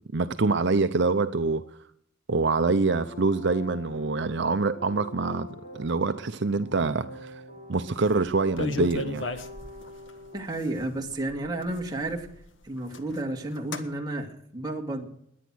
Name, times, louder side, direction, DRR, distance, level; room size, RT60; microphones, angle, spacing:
voice 1, 0.1-1.8 2.3-5.5 5.7-7.4 7.7-9.3, right 3 dB, 60° right, 10 dB, 0.7 m, -25 dB
sound 1, 3.0-10.4, left 2 dB, 40° left, 7.1 m, -45 dB
sound 2, 8.0-8.1 8.3-10.1 10.8-10.9 11.1-12.4 12.8-13.2 13.6-13.9, left 3 dB, 65° left, 1.5 m, -34 dB
voice 2, 10.3-12.3 12.6-15.1, right 2 dB, 20° right, 1 dB, 2.5 m, -32 dB
21.0 x 9.5 x 6.2 m, 0.69 s
head